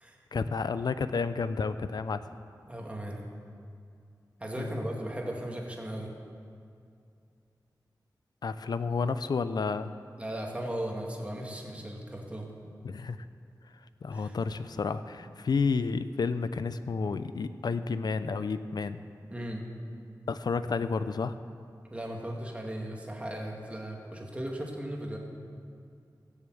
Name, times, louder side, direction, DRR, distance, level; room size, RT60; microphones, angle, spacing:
voice 1, 0.3-2.2 4.6-4.8 8.4-9.9 12.8-13.2 14.0-19.0 20.3-21.3, left 4 dB, 70° left, 12 dB, 0.5 m, -31 dB
voice 2, 2.7-3.3 4.4-6.1 10.2-12.5 14.1-14.4 19.3-19.7 21.9-25.2, right 1 dB, 15° right, 0 dB, 2.1 m, -37 dB
16.0 x 7.3 x 7.7 m, 2.4 s
wide cardioid pair, 85°, 7 cm